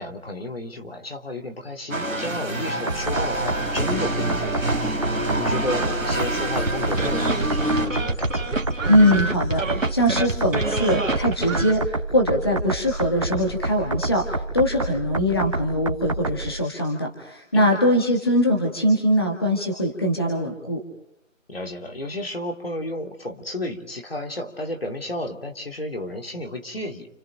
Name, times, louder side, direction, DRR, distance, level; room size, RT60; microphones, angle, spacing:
voice 1, 0.0-8.5 17.5-17.8 21.5-27.1, left 1 dB, 45° left, 3 dB, 3.1 m, -32 dB
sound 1, 1.9-7.8, right 1 dB, 5° left, 2.4 m, -26 dB
sound 2, 2.9-16.5, right 2 dB, 25° right, 1.7 m, -29 dB
sound 3, 6.7-11.7, right 3 dB, 70° right, 2.1 m, -27 dB
voice 2, 8.9-20.8, equal, 20° left, 0 dB, 1.8 m, -22 dB
30.0 x 28.0 x 5.2 m, 0.74 s
figure-of-eight pair, 175°, 40 cm